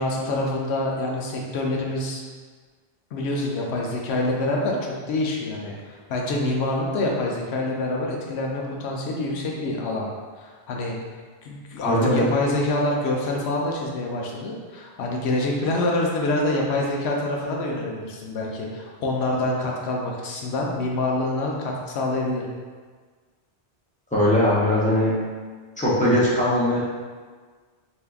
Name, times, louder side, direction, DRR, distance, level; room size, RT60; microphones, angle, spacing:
voice 1, 0.0-2.2 3.1-10.1 10.4-11.0 11.4-22.4, left 2 dB, 90° left, -1 dB, 0.9 m, -26 dB
voice 2, 11.8-12.3 24.1-25.1 25.8-26.8, left 1 dB, 10° left, -8 dB, 0.5 m, -20 dB
3.4 x 2.7 x 2.3 m, 1.5 s
omnidirectional pair, 1.1 m